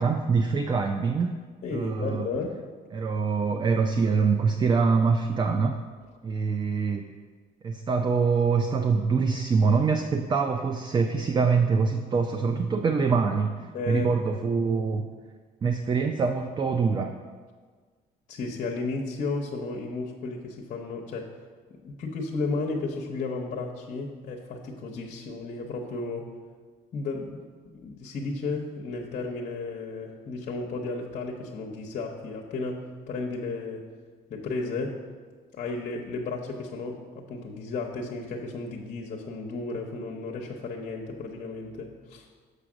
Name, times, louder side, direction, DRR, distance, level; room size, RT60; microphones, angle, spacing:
voice 1, 0.0-1.3 1.7-2.3 2.9-5.8 6.2-7.0 7.6-15.1 15.6-17.1, right 5 dB, 25° right, 6 dB, 0.4 m, -24 dB
voice 2, 1.6-2.6 13.7-14.2 18.3-21.3 21.7-26.3 26.9-33.9 34.3-35.0 35.5-42.3, left 3 dB, 50° left, 0 dB, 0.8 m, -33 dB
6.7 x 4.8 x 6.1 m, 1.5 s
cardioid pair, 110°, 17 cm